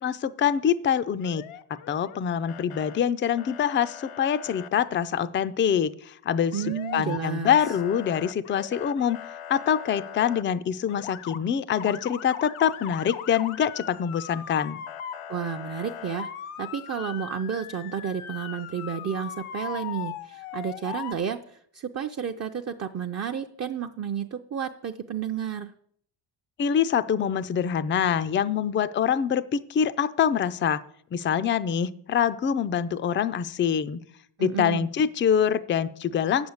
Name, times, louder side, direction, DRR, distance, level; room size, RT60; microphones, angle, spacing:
voice 1, 0.0-1.4 1.9-6.6 6.9-9.2 9.5-14.8 26.6-30.8 31.1-34.0 34.4-36.5, left 8 dB, 25° left, 13 dB, 0.3 m, -25 dB
Motor vehicle (road) / Siren, 1.2-2.2 2.5-3.0 3.4-4.7 6.5-7.2 7.4-10.4 10.9-11.4 11.8-21.1, left 9 dB, 85° left, 0.8 m, -39 dB
voice 2, 6.5-7.6 15.3-16.3 16.6-25.7 34.4-34.9, right 7 dB, 35° right, 4 dB, 0.5 m, -31 dB
8.7 x 7.1 x 7.9 m, 0.66 s
cardioid pair, 135°, 49 cm